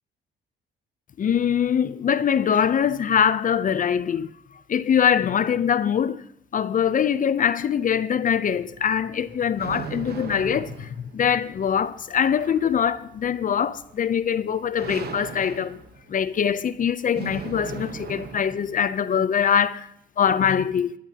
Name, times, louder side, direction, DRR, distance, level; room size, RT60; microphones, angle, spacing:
voice 1, 1.2-4.3 4.7-6.2 6.5-15.8 16.1-19.9 20.2-20.9, left 8 dB, 40° left, 0.5 m, -23 dB
sound 1, 8.5-18.9, right 7 dB, 55° right, 1.0 m, -39 dB
19.5 x 11.0 x 2.8 m
cardioid pair, 90°, 20 cm